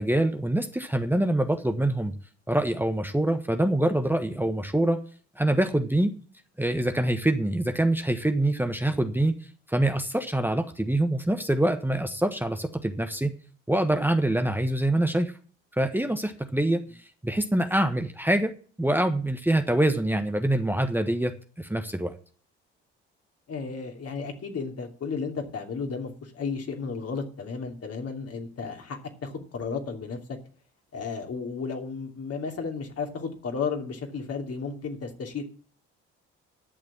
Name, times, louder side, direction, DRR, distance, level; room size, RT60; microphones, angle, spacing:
voice 1, 0.0-2.1 2.5-5.0 5.4-6.1 6.6-9.4 9.7-13.4 13.7-15.3 15.8-16.8 17.2-18.5 18.8-22.1, right 1 dB, 5° right, 6 dB, 1.3 m, -25 dB
voice 2, 23.5-30.2 30.9-35.4, left 5 dB, 50° left, 3 dB, 3.0 m, -33 dB
11.0 x 6.8 x 7.1 m, 0.41 s
hypercardioid pair, 55°, 31 cm